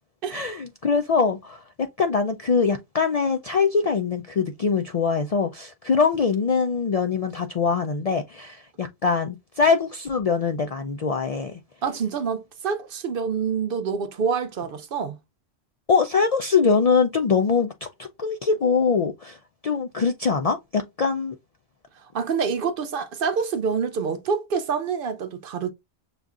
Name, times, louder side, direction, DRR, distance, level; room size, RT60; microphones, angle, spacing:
voice 1, 0.3-11.6 15.9-21.4, left 5 dB, 55° left, 0.4 m, -23 dB
voice 2, 11.8-15.2 22.0-25.7, right 6 dB, 60° right, 0.7 m, -27 dB
6.7 x 2.4 x 2.4 m
omnidirectional pair, 1.1 m